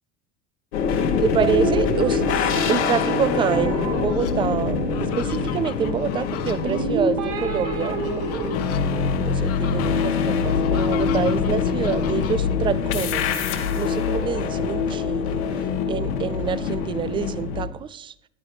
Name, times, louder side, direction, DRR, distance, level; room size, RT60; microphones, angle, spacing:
sound 1, 0.7-17.7, left 5 dB, 70° left, 1.6 m, -24 dB
voice 1, 0.9-8.5 8.9-15.4 15.9-18.1, right 8 dB, 15° right, 17 dB, 0.3 m, -27 dB
sound 2, 1.4-5.6 6.6-8.6, right 3 dB, 40° right, 1.6 m, -29 dB
Fowl, 3.4-4.3 4.8-12.6 13.5-14.6 15.0-15.1 15.5-17.2, left 10 dB, 40° left, 1.3 m, -40 dB
15.0 x 10.0 x 3.3 m, 0.74 s
hypercardioid pair, 85°, 35 cm